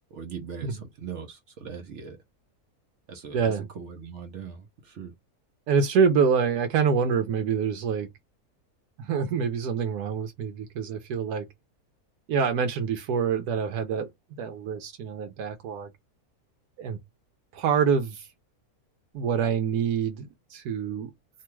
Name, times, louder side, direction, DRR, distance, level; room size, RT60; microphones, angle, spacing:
voice 1, 0.1-2.2 3.1-5.1, right 6 dB, 60° right, 0.8 m, -40 dB
voice 2, 3.3-3.7 5.7-8.1 9.0-11.4 12.3-14.1 14.4-15.9 16.8-17.0 17.5-18.3 19.1-21.1, right 6 dB, 85° right, 1.1 m, -26 dB
2.8 x 2.2 x 3.0 m
omnidirectional pair, 1.6 m